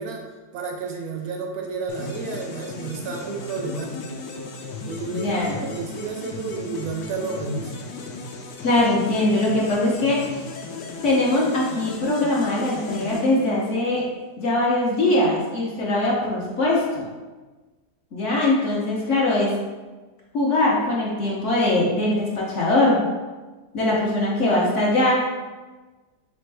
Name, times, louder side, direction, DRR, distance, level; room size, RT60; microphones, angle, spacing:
voice 1, 0.0-4.2 4.8-7.7, right 4 dB, 70° right, 2 dB, 1.0 m, -31 dB
sound 1, 1.9-14.0, left 3 dB, 85° left, 1.2 m, -36 dB
voice 2, 5.1-5.6 8.6-10.2 11.0-14.0 14.4-17.1 18.1-19.5 20.3-23.0 23.7-25.1, left 2 dB, 55° left, -4 dB, 0.9 m, -21 dB
4.2 x 3.6 x 3.3 m, 1.3 s
omnidirectional pair, 1.8 m